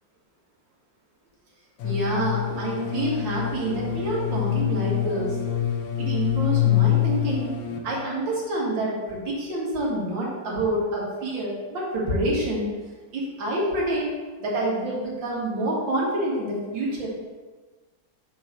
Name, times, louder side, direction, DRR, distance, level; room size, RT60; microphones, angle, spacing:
sound 1, 1.8-7.8, left 12 dB, 85° left, 1.4 m, -25 dB
voice 1, 1.8-5.4 6.0-12.7 13.1-14.1 14.4-17.1, right 1 dB, 85° right, -4 dB, 2.3 m, -27 dB
6.7 x 6.4 x 3.0 m, 1.3 s
omnidirectional pair, 2.0 m